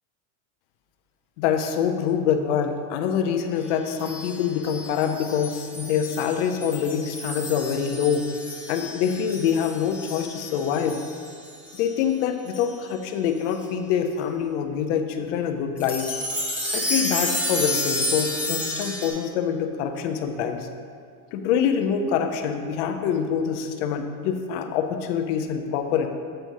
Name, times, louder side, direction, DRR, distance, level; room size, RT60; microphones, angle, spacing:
voice 1, 1.4-8.3 8.7-11.0 11.8-16.1 16.7-20.7 21.3-26.1, left 7 dB, 55° left, 6 dB, 0.6 m, -25 dB
sound 1, 4.0-11.9 12.5-12.7 13.5-13.6 15.8-19.1, left 1 dB, 5° right, 0.7 m, -31 dB
7.7 x 2.7 x 5.8 m, 2.1 s
supercardioid pair, 170°, 44 cm